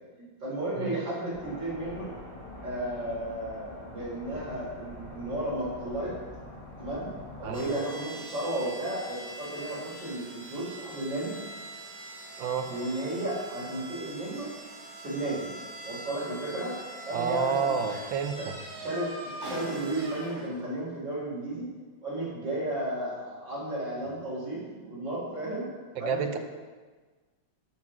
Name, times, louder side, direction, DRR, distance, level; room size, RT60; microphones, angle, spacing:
voice 1, 0.2-2.1 2.6-6.1 6.8-7.1 7.4-11.3 12.7-14.5 15.0-15.5 15.8-16.7 17.1-17.8 18.4-18.5 18.7-19.1 19.4-21.6 22.0-25.6 26.0-26.4, right 1 dB, 70° right, -6 dB, 4.7 m, -33 dB
sound 1, 1.3-7.6, left 1 dB, 15° left, 2.8 m, -44 dB
sound 2, 7.5-20.8, right 1 dB, 50° right, 2.5 m, -43 dB
voice 2, 17.1-18.5 26.0-26.4, right 6 dB, 90° right, 7 dB, 1.6 m, -29 dB
12.0 x 5.6 x 6.2 m, 1.4 s
omnidirectional pair, 2.1 m